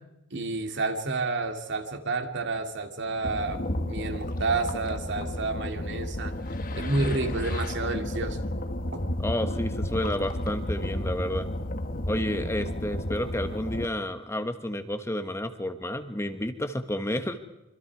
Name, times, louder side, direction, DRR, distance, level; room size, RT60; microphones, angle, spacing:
voice 1, 0.3-6.3 6.7-8.4 8.7-9.0, right 3 dB, 55° right, 5 dB, 2.7 m, -30 dB
sound 1, 3.2-13.9, left 1 dB, 40° left, 1.3 m, -32 dB
voice 2, 9.2-11.5 12.0-17.5, left 1 dB, 15° left, 8 dB, 1.4 m, -30 dB
26.5 x 25.5 x 4.8 m, 0.94 s
head